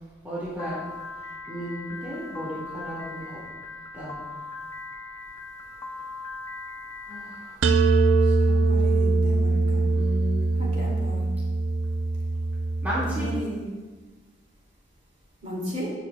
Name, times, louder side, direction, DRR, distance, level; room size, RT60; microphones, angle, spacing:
voice 1, 0.2-0.8 1.5-3.4 3.9-4.1 7.1-7.5 8.1-8.8 9.9-10.9 12.8-13.3, equal, 10° right, -10 dB, 2.2 m, -34 dB
Piano, 0.6-7.6, left 3 dB, 20° left, 0.8 m, -39 dB
sound 1, 7.6-13.4, right 3 dB, 80° right, 0.5 m, -22 dB
voice 2, 8.7-9.8 10.6-11.2 13.1-13.6 15.4-15.9, equal, 40° right, -5 dB, 2.7 m, -34 dB
15.0 x 6.4 x 2.4 m, 1.3 s
head